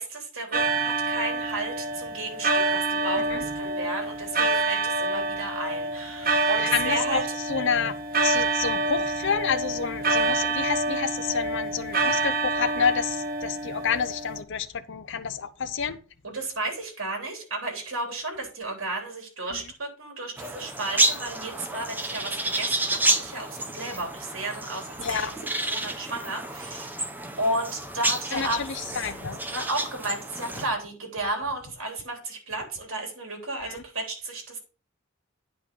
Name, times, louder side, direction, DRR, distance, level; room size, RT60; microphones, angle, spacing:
voice 1, 0.0-7.2 16.2-27.1 27.4-28.6 29.5-34.6, right 2 dB, 75° right, 3.4 m, -33 dB
sound 1, 0.5-14.4, right 3 dB, 45° right, 1.4 m, -27 dB
voice 2, 6.7-7.2 7.5-7.9 8.2-16.0 25.0-25.3 28.3-28.5 28.9-29.4 33.6-33.8, left 6 dB, 65° left, 0.7 m, -28 dB
sound 2, 20.4-30.7, right 2 dB, 10° right, 1.0 m, -30 dB
9.6 x 5.4 x 5.4 m
head